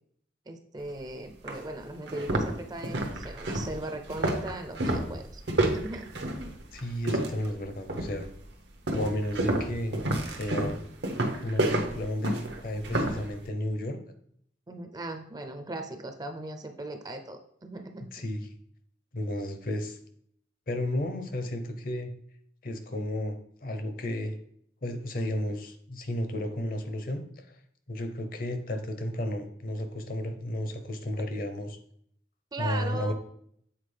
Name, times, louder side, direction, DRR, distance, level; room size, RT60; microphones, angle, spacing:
voice 1, 0.5-6.5 14.7-18.0 32.5-33.1, right 2 dB, 20° right, 5 dB, 0.5 m, -38 dB
sound 1, 0.9-1.0 1.5-1.6 2.0-7.5 7.9-8.3 8.9-13.2, right 1 dB, 80° right, 0.9 m, -29 dB
voice 2, 6.7-8.3 8.9-10.0 10.3-10.8 11.4-14.0 18.1-18.5 19.1-20.0 20.7-22.1 22.6-24.3 24.8-27.6 27.9-31.8 32.6-33.1, left 1 dB, 50° left, 7 dB, 0.7 m, -33 dB
7.4 x 4.0 x 3.3 m, 0.67 s
head